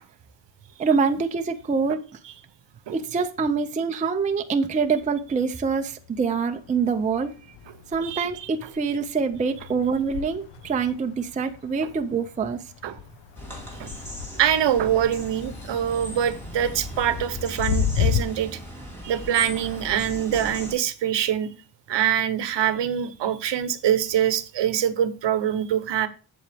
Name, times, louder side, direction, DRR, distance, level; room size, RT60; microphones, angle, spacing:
voice 1, 0.8-2.0 2.9-7.3 7.9-12.6, right 5 dB, 15° right, 0.4 m, -25 dB
sound 1, 5.0-6.2 6.5-18.2, left 9 dB, 70° left, 0.8 m, -33 dB
voice 2, 8.0-8.5 12.8-13.0 13.8-13.9 14.4-18.6 19.0-21.5 21.9-26.1, right 10 dB, 60° right, 0.9 m, -24 dB
sound 2, 13.4-20.7, equal, 5° left, 2.7 m, -38 dB
7.9 x 7.6 x 3.4 m
wide cardioid pair, 165°, 47 cm